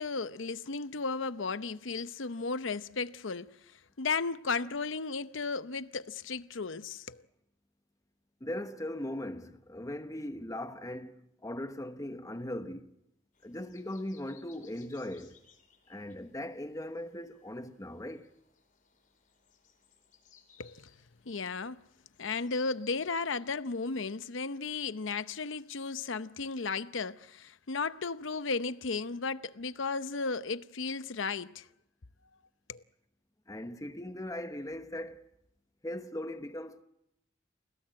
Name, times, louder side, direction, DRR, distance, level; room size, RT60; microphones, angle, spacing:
voice 1, 0.0-3.5 4.0-7.2 20.6-20.9 21.3-21.8 22.2-31.7 32.7-32.8, left 4 dB, 70° left, 0.8 m, -34 dB
voice 2, 8.4-12.9 13.4-15.4 15.9-18.3 33.5-35.2 35.8-36.8, left 1 dB, 15° left, 1.0 m, -39 dB
sound 1, 13.3-23.4, left 7 dB, 45° left, 4.8 m, -64 dB
29.0 x 17.5 x 7.7 m
head